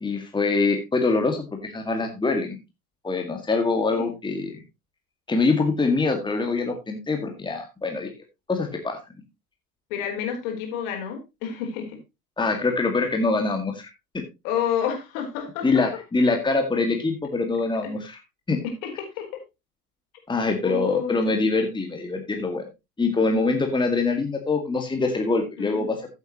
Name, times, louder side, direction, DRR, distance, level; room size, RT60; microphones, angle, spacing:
voice 1, 0.0-2.6 3.0-4.6 5.3-8.1 8.5-9.0 12.4-13.9 14.1-14.2 15.6-18.2 18.5-18.6 20.3-22.6 23.0-26.0, left 3 dB, 10° left, 4 dB, 2.0 m, -24 dB
voice 2, 9.9-12.0 14.4-15.7 17.8-17.9 18.6-19.4 20.6-21.4 25.6-25.8, left 8 dB, 55° left, 3 dB, 4.4 m, -29 dB
14.5 x 8.2 x 3.0 m, 0.24 s
figure-of-eight pair, 75°, 46 cm